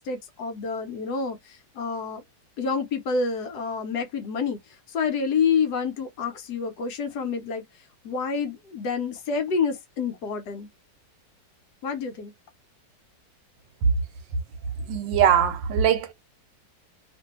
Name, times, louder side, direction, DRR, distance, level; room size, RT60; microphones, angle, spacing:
voice 1, 0.0-2.2 2.6-10.7 11.8-12.3, left 5 dB, 70° left, 1.1 m, -28 dB
voice 2, 14.9-16.1, right 9 dB, 90° right, 1.3 m, -21 dB
2.9 x 2.6 x 2.8 m
omnidirectional pair, 2.0 m